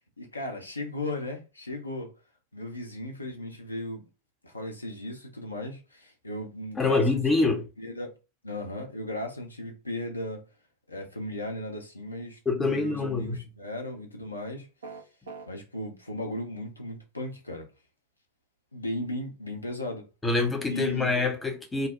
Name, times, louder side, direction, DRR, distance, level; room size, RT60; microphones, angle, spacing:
voice 1, 0.2-2.1 2.5-4.1 4.4-7.2 7.8-8.1 8.4-10.4 10.9-14.7 15.5-17.6 18.7-20.1 20.7-21.1, left 1 dB, 80° left, 0.6 m, -36 dB
voice 2, 6.8-7.7 12.5-13.4 20.2-21.9, left 3 dB, 10° left, 0.6 m, -25 dB
sound 1, 14.8-15.5, right 4 dB, 65° right, 0.5 m, -41 dB
2.9 x 2.0 x 2.4 m
figure-of-eight pair, 90°, 0 cm